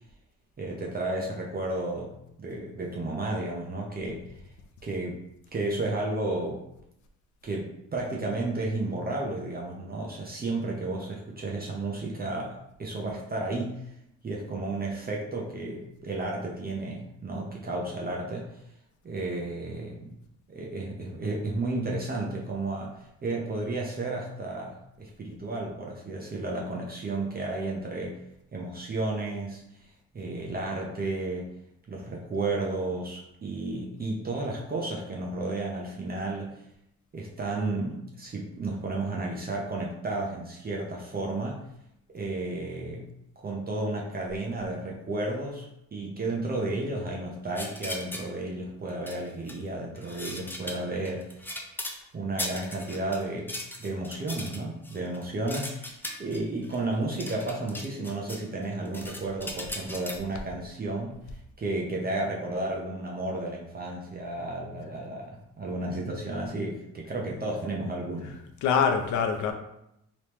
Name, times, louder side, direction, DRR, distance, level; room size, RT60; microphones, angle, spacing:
voice 1, 0.6-4.3 4.8-5.2 5.5-6.6 7.4-13.8 14.2-18.5 19.0-20.1 20.5-28.2 28.5-29.6 30.1-31.5 31.9-36.6 37.1-41.6 42.1-43.1 43.4-51.4 52.1-61.2 61.6-68.3, right 2 dB, 30° right, -2 dB, 0.7 m, -32 dB
sound 1, 47.6-48.3 48.9-49.6 50.0-52.0 52.4-58.4 58.7-60.2, left 1 dB, 5° left, 0.5 m, -38 dB
voice 2, 68.3-69.5, left 6 dB, 70° left, 5 dB, 0.6 m, -25 dB
3.4 x 3.0 x 3.0 m, 0.81 s
cardioid pair, 90°, 30 cm